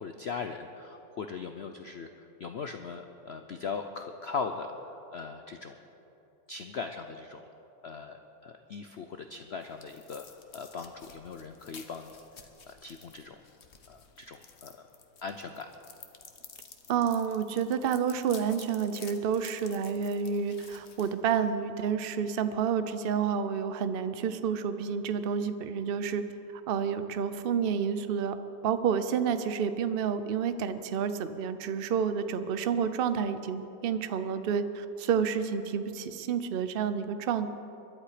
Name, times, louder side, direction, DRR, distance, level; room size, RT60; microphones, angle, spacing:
voice 1, 0.0-2.1 2.4-5.8 6.5-7.4 7.8-10.3 10.5-12.1 12.7-13.4 13.9-14.8 15.2-15.7, left 5 dB, 65° left, 6 dB, 0.6 m, -39 dB
sound 1, 9.1-21.8, left 5 dB, 45° left, 1.2 m, -52 dB
voice 2, 16.9-26.2 26.7-28.4 28.6-37.5, right 7 dB, 85° right, 11 dB, 0.5 m, -29 dB
22.5 x 11.5 x 5.0 m, 2.9 s
omnidirectional pair, 1.9 m